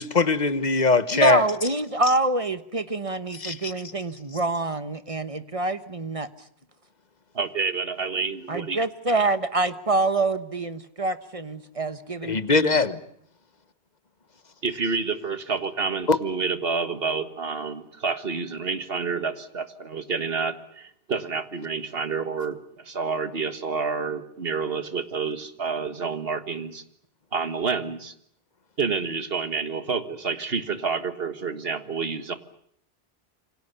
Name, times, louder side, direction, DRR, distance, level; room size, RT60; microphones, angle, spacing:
voice 1, 0.0-1.4 3.4-3.5 12.2-12.9 16.1-16.2, left 3 dB, 40° left, 1.4 m, -20 dB
voice 2, 1.1-6.3 8.5-12.9, right 3 dB, 30° right, 1.2 m, -26 dB
voice 3, 7.3-8.8 14.6-26.8 27.3-28.1 28.8-32.3, right 5 dB, 65° right, 1.9 m, -29 dB
27.5 x 25.0 x 6.9 m
omnidirectional pair, 1.1 m